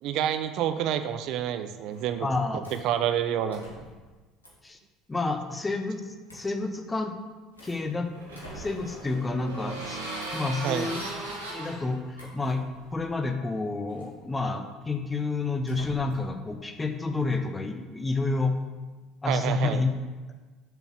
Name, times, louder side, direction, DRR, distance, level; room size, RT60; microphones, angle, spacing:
voice 1, 0.0-2.3 2.7-3.6 10.6-10.9 19.3-19.8, right 10 dB, 55° right, 9 dB, 0.5 m, -28 dB
sound 1, 1.9-2.2 2.6-2.9 3.5-4.1 4.4-4.7 6.3-6.5 7.1-7.8 8.3-9.0 10.2-10.5 12.1-12.6 13.9-14.2 15.6-16.3, right 1 dB, 80° left, 1.4 m, -47 dB
voice 2, 2.2-2.7 4.6-4.8 5.1-7.2 7.6-10.0 10.3-11.0 11.5-12.6 12.9-18.6 19.2-19.9, left 3 dB, 15° left, 5 dB, 0.8 m, -29 dB
sound 2, 7.6-13.1, right 2 dB, 80° right, 1.5 m, -38 dB
6.9 x 4.0 x 6.0 m, 1.3 s
figure-of-eight pair, 60°, 0 cm